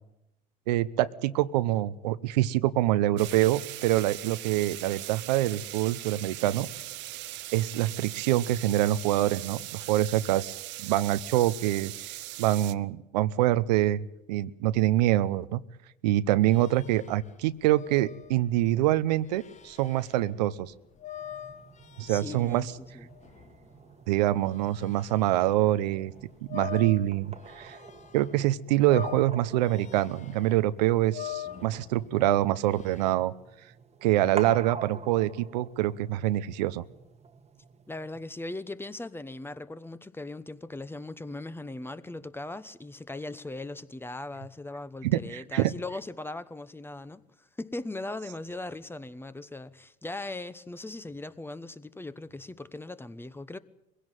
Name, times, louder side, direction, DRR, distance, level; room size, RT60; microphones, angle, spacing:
voice 1, 0.7-6.7 7.5-10.5 10.8-15.6 16.0-20.7 22.0-22.7 24.1-26.1 26.5-27.8 28.1-33.3 34.0-36.8 45.0-45.7, right 14 dB, 90° right, 0.8 m, -25 dB
sound 1, 3.2-12.7, right 16 dB, 60° right, 0.9 m, -40 dB
sound 2, 16.5-25.6 26.0-28.5 28.7-33.1, left 11 dB, 35° left, 1.3 m, -44 dB
sound 3, 21.2-38.2, right 6 dB, 30° right, 1.5 m, -47 dB
voice 2, 22.1-22.7 22.9-23.1 37.9-53.6, left 2 dB, 10° left, 1.1 m, -39 dB
22.0 x 16.5 x 9.2 m
supercardioid pair, 85°, 21 cm